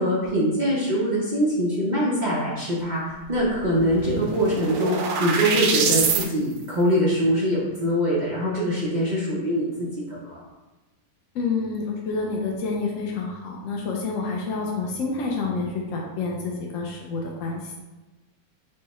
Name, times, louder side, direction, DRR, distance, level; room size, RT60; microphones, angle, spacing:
voice 1, 0.0-10.4, equal, 40° right, -7 dB, 0.6 m, -23 dB
sound 1, 3.4-3.5 3.7-6.3, right 5 dB, 90° right, 1.3 m, -25 dB
voice 2, 11.3-17.7, left 4 dB, 65° left, -1 dB, 0.8 m, -28 dB
5.5 x 2.2 x 4.1 m, 1.1 s
omnidirectional pair, 1.9 m